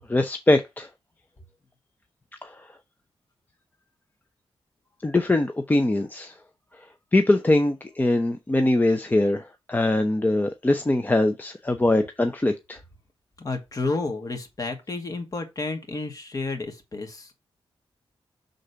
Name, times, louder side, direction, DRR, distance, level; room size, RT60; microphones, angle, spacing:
voice 1, 0.1-0.9 2.4-2.7 5.0-6.3 7.1-12.8, left 2 dB, 20° left, 0.7 m, -22 dB
voice 2, 13.4-17.3, left 3 dB, 35° left, 2.1 m, -31 dB
6.6 x 3.9 x 5.5 m
wide cardioid pair, 105°, 10 cm